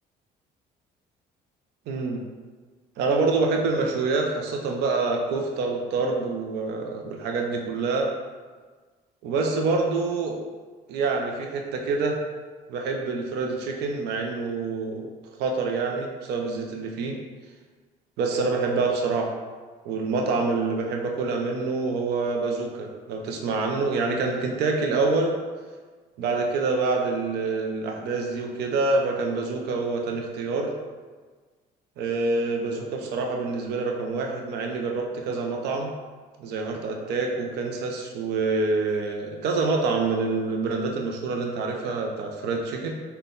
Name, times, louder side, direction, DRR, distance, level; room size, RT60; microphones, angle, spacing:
voice 1, 1.9-2.2 3.0-8.1 9.2-10.4 10.9-12.2 12.7-15.1 15.4-17.2 18.2-19.3 19.8-25.3 26.2-30.7 32.0-35.9 36.4-42.9, right 3 dB, 75° right, 1 dB, 0.5 m, -26 dB
3.8 x 2.2 x 3.7 m, 1.4 s
cardioid pair, 110°, 17 cm